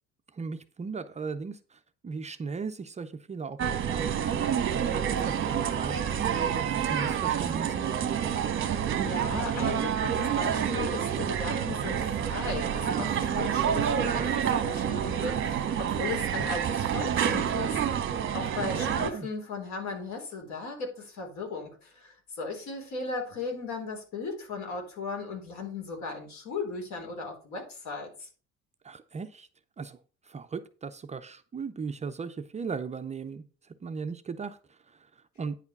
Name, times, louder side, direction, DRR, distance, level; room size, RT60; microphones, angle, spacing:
voice 1, 0.3-4.3 4.8-8.4 18.6-19.3 28.8-29.5 29.8-30.0 30.2-35.6, right 5 dB, 25° right, 9 dB, 0.5 m, -38 dB
sound 1, 3.6-19.1, right 8 dB, 45° right, 1.3 m, -28 dB
voice 2, 9.0-28.3, left 4 dB, 70° left, 2 dB, 3.8 m, -37 dB
9.6 x 4.9 x 5.3 m, 0.38 s
cardioid pair, 150°, 29 cm